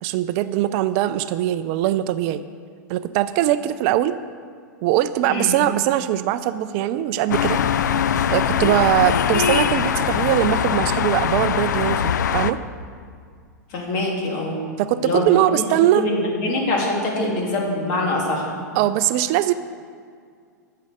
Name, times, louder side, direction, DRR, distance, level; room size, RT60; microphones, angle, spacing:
voice 1, 0.0-2.4 2.9-4.2 4.8-7.6 8.3-12.6 14.8-16.1 18.7-19.5, right 13 dB, 45° right, 13 dB, 0.4 m, -21 dB
sound 1, 7.3-12.5, left 8 dB, 70° left, 0.5 m, -21 dB
voice 2, 13.7-14.6 15.0-15.2 15.5-15.6 15.9-18.5, left 2 dB, 45° left, -1 dB, 3.0 m, -24 dB
13.0 x 6.7 x 6.5 m, 2.1 s
hypercardioid pair, 100°, 10 cm